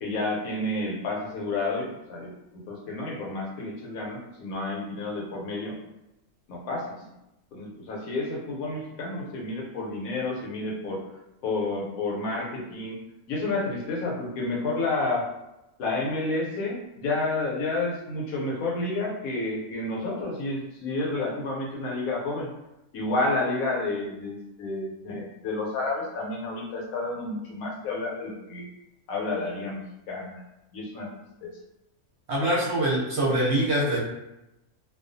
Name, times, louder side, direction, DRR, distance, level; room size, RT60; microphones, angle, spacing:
voice 1, 0.0-2.3 2.7-5.8 6.5-6.8 7.5-11.0 11.4-12.9 13.3-15.3 15.8-22.5 22.9-28.7 29.1-29.8 30.1-30.4 30.7-31.1 31.4-31.5, left 2 dB, 75° left, -1 dB, 1.0 m, -30 dB
voice 2, 32.3-34.0, right 1 dB, 60° right, -6 dB, 0.8 m, -24 dB
2.3 x 2.3 x 2.5 m, 0.91 s
omnidirectional pair, 1.5 m